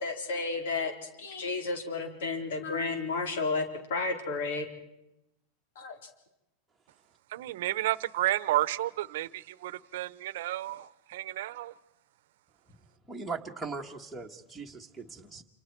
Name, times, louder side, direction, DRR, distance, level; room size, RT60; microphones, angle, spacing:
voice 1, 0.0-3.6 3.9-4.7 5.8-6.0, left 3 dB, 85° left, 4.1 m, -32 dB
voice 2, 7.3-11.7, right 15 dB, 65° right, 0.9 m, -31 dB
voice 3, 13.1-15.4, right 4 dB, ahead, 1.4 m, -39 dB
28.0 x 28.0 x 4.6 m
supercardioid pair, 175°, 0 cm